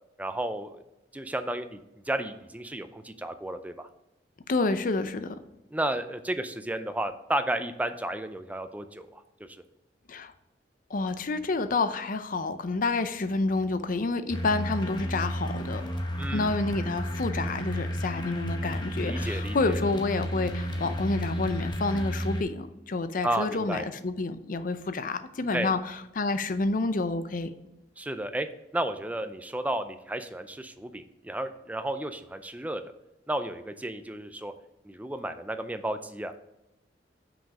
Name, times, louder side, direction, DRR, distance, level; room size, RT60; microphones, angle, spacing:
voice 1, 0.2-0.8 1.1-1.8 2.1-3.9 5.7-9.2 9.5-9.6 16.2-16.6 19.0-19.8 23.2-23.9 25.5-25.7 28.0-28.5 28.7-32.8 33.3-34.5 34.8-36.3, right 1 dB, 10° right, 0.5 m, -32 dB
voice 2, 4.5-5.4 10.1-10.3 10.9-15.8 16.3-27.5, left 3 dB, 50° left, 0.6 m, -29 dB
sound 1, 14.3-22.4, equal, 25° left, 0.9 m, -32 dB
6.1 x 5.1 x 4.9 m
head